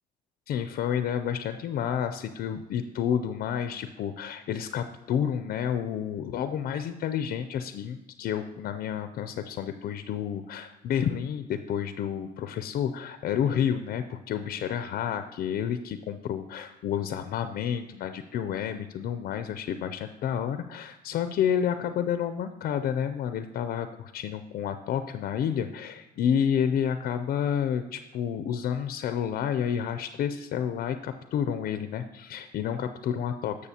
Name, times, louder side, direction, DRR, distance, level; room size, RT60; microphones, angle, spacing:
voice 1, 0.5-33.6, left 8 dB, 60° left, 10 dB, 0.5 m, -30 dB
12.0 x 6.6 x 2.8 m, 1.1 s
cardioid pair, 110°, 17 cm